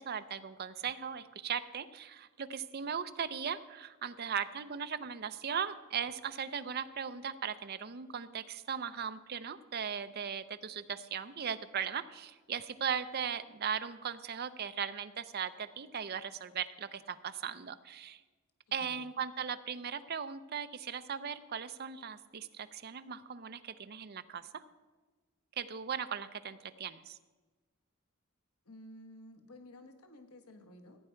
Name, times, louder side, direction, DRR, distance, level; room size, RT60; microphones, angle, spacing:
voice 1, 0.0-18.2 18.7-24.6 25.6-27.2, right 7 dB, 45° right, 11 dB, 0.6 m, -38 dB
voice 2, 18.7-19.1 28.6-31.0, left 1 dB, 90° left, 7 dB, 1.2 m, -53 dB
15.0 x 9.2 x 4.5 m, 1.3 s
head